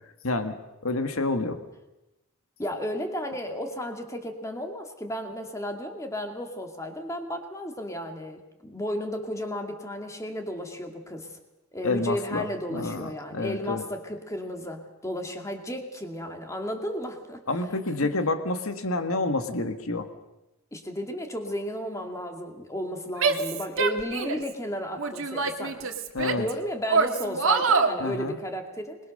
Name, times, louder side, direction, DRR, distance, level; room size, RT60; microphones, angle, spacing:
voice 1, 0.2-0.5 0.8-1.6 11.8-12.4 12.7-13.8 17.5-20.1 26.1-26.5 28.0-28.4, left 2 dB, 85° left, 8 dB, 1.8 m, -28 dB
voice 2, 2.6-11.4 11.7-17.4 18.0-18.2 20.7-25.9 26.2-29.0, equal, 15° left, 4 dB, 2.4 m, -34 dB
Female speech woman speaking / Yell, 23.2-24.5 25.0-26.5 26.9-28.0, right 4 dB, 75° right, 1.9 m, -25 dB
26.0 x 21.5 x 6.6 m, 0.98 s
head